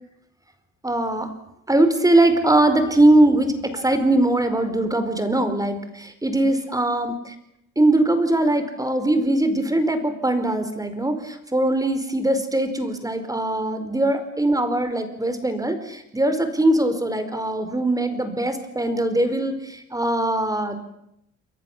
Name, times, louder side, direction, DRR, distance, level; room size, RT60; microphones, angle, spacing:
voice 1, 0.8-1.3 1.7-7.3 7.8-20.8, right 1 dB, 10° right, 9 dB, 4.7 m, -21 dB
30.0 x 22.5 x 7.4 m, 0.79 s
cardioid pair, 90°, 30 cm